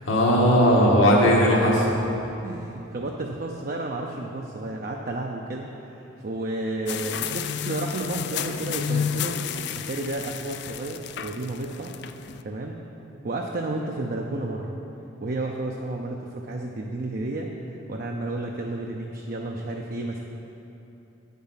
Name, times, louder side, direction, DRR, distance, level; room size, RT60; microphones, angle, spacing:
voice 1, 0.1-1.9, equal, 75° left, -3 dB, 1.7 m, -18 dB
voice 2, 2.4-9.4 9.9-11.9 12.4-12.8 13.2-14.7 15.2-20.2, right 2 dB, 45° right, 0 dB, 0.5 m, -32 dB
sound 1, 6.9-12.4, left 8 dB, 55° left, 0.3 m, -31 dB
8.6 x 7.3 x 5.7 m, 3.0 s
head